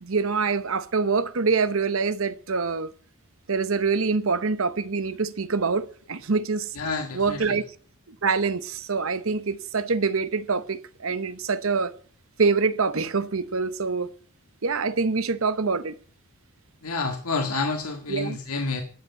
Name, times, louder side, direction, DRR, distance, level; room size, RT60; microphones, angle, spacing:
voice 1, 0.0-2.9 3.5-6.7 7.1-7.6 8.2-11.9 12.4-14.1 14.6-15.9 18.1-18.4, right 4 dB, 65° right, 0.9 m, -25 dB
voice 2, 6.8-7.6 16.8-18.8, left 3 dB, 85° left, 1.8 m, -29 dB
13.0 x 8.3 x 8.0 m
head